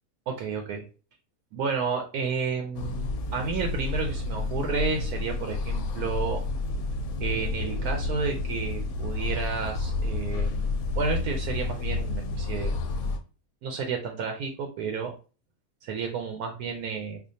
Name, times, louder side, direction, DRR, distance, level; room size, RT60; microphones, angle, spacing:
voice 1, 0.3-0.8 1.5-6.4 7.2-10.7 11.0-12.8 13.6-15.1 15.8-17.2, right 5 dB, 75° right, 4 dB, 1.1 m, -31 dB
sound 1, 2.7-13.2, left 3 dB, 75° left, 1.0 m, -30 dB
4.3 x 2.5 x 2.6 m, 0.35 s
omnidirectional pair, 1.7 m